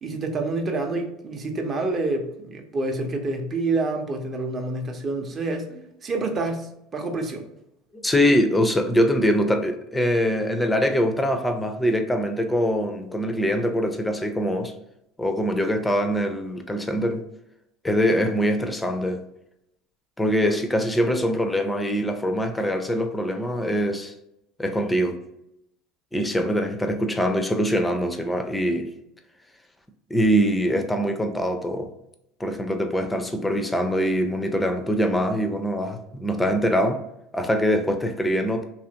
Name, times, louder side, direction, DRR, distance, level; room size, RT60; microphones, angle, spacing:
voice 1, 0.0-5.7 6.0-7.5, right 3 dB, 35° right, 0.6 m, -27 dB
voice 2, 7.9-14.7 15.2-17.2 17.8-19.2 20.2-24.1 24.6-25.2 26.1-28.9 30.1-31.9 32.4-37.0 37.3-38.6, equal, 10° left, 0.5 m, -23 dB
2.8 x 2.4 x 2.8 m
supercardioid pair, 95°, 0 cm